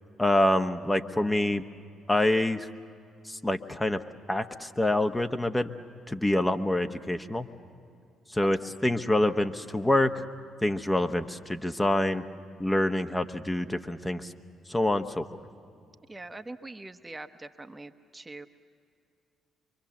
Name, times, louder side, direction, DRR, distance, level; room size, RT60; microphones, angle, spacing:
voice 1, 0.2-1.6 2.1-2.7 3.3-4.0 4.3-5.7 6.1-7.5 8.3-10.2 10.6-12.2 12.6-14.3 14.7-15.2, left 1 dB, 15° left, 7 dB, 1.1 m, -26 dB
voice 2, 16.1-18.5, right 2 dB, 20° right, 8 dB, 1.0 m, -43 dB
24.5 x 24.0 x 7.3 m, 2.4 s
hypercardioid pair, 45°, 0 cm